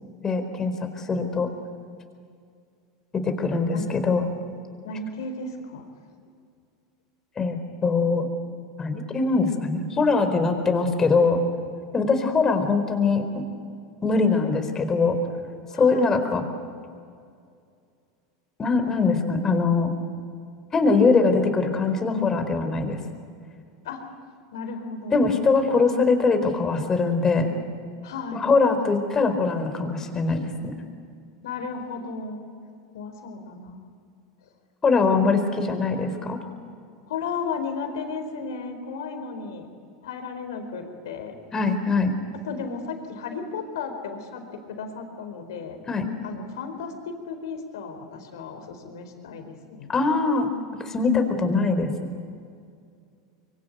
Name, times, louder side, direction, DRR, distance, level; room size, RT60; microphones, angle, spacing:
voice 1, 0.2-1.5 3.2-4.3 7.4-8.3 8.8-11.4 11.9-13.5 14.0-15.2 15.8-16.4 18.6-19.9 20.7-23.0 25.1-27.5 28.3-30.7 34.8-36.4 41.5-42.1 45.9-46.1 49.9-50.5 50.8-51.9, left 4 dB, 25° left, 7 dB, 4.4 m, -22 dB
voice 2, 4.8-5.9 15.7-16.1 23.8-24.0 24.5-25.3 28.0-28.5 31.4-32.5 32.9-33.9 35.1-35.4 37.1-39.7 40.0-41.4 42.4-45.8 46.2-49.9, left 4 dB, 75° left, 6 dB, 4.3 m, -34 dB
24.5 x 23.5 x 9.4 m, 2.3 s
hypercardioid pair, 95°, 2 cm